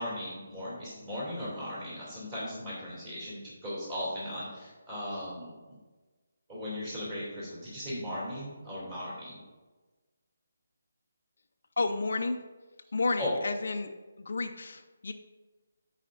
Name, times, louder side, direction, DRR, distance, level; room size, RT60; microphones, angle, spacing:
voice 1, 0.0-5.8 6.5-9.4 13.2-13.3, left 1 dB, 15° right, -7 dB, 2.5 m, -37 dB
voice 2, 11.8-12.4 12.9-13.9 14.2-15.1, left 3 dB, 55° left, 6 dB, 0.6 m, -31 dB
14.5 x 5.0 x 2.5 m, 1.3 s
hypercardioid pair, 175°, 0 cm